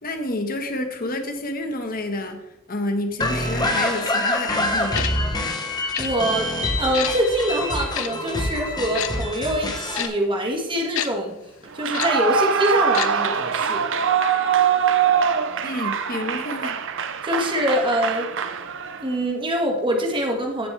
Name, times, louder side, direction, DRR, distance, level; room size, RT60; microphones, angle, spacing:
voice 1, 0.0-5.1 15.6-16.8, left 1 dB, 45° left, 6 dB, 1.4 m, -29 dB
sound 1, 3.2-10.1, left 1 dB, 20° left, 1.3 m, -25 dB
Tick-tock, 4.9-5.1 5.9-6.1 6.9-7.1 7.9-8.1 8.9-9.1 9.9-10.1 10.9-11.1 11.9-12.1 12.9-13.1 13.4-13.5, left 10 dB, 75° left, 0.8 m, -27 dB
voice 2, 5.7-6.5 6.8-11.4 11.7-13.8 17.2-18.3 19.0-20.7, equal, 25° right, 1 dB, 1.9 m, -24 dB
Clapping / Cheering / Applause, 11.7-19.1, right 7 dB, 60° right, 0.8 m, -23 dB
15.5 x 7.1 x 3.4 m, 0.86 s
head